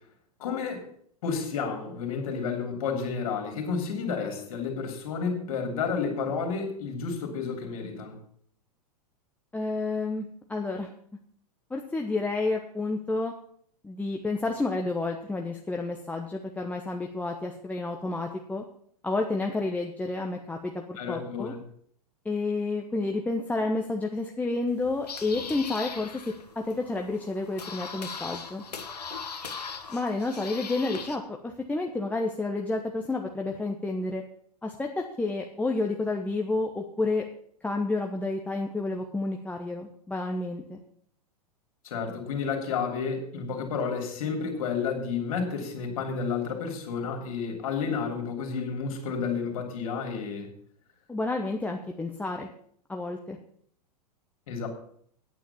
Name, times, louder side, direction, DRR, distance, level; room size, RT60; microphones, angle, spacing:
voice 1, 0.4-0.8 1.2-8.2 21.0-21.6 41.8-50.5 54.5-54.7, left 5 dB, 60° left, 3 dB, 3.1 m, -31 dB
voice 2, 9.5-10.9 11.7-13.3 13.8-18.6 19.0-21.5 22.2-28.6 29.9-34.2 34.6-37.2 37.6-40.8 51.1-52.5 52.9-53.4, left 3 dB, 5° left, 2 dB, 1.0 m, -30 dB
sound 1, 24.7-31.1, left 5 dB, 80° left, 1.5 m, -40 dB
9.4 x 8.8 x 7.0 m, 0.64 s
figure-of-eight pair, 100°, 20 cm